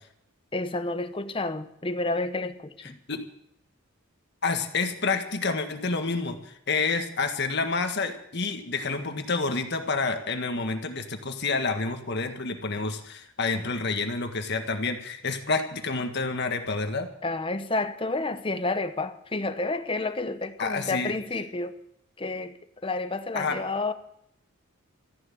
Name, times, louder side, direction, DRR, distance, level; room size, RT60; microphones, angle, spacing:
voice 1, 0.5-3.0 17.2-21.8 22.2-22.6 22.8-23.9, left 2 dB, 25° left, 0.9 m, -30 dB
voice 2, 4.4-17.1 20.6-21.1 23.4-23.6, left 4 dB, 50° left, 1.7 m, -28 dB
14.0 x 11.0 x 8.4 m
head